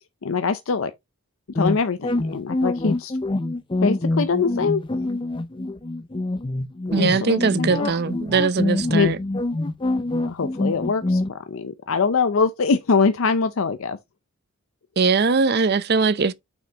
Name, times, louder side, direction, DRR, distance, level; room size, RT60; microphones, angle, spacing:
voice 1, 0.2-0.9 1.5-3.1 3.8-4.8 6.9-8.0 8.9-9.1 10.2-14.0, left 5 dB, 80° left, 0.6 m, -23 dB
sound 1, 1.6-11.3, left 2 dB, 25° left, 0.5 m, -25 dB
voice 2, 6.9-9.2 15.0-16.3, right 4 dB, 50° right, 0.6 m, -20 dB
7.2 x 6.0 x 2.9 m
head